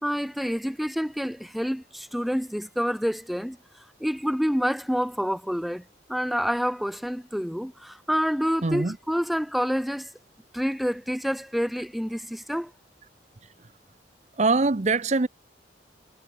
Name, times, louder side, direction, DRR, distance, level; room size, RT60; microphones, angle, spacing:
voice 1, 0.0-3.6 4.0-5.8 6.1-10.1 10.5-12.7, equal, ahead, 1.0 m, -28 dB
voice 2, 8.6-9.0 14.4-15.3, right 3 dB, 40° right, 0.7 m, -23 dB
head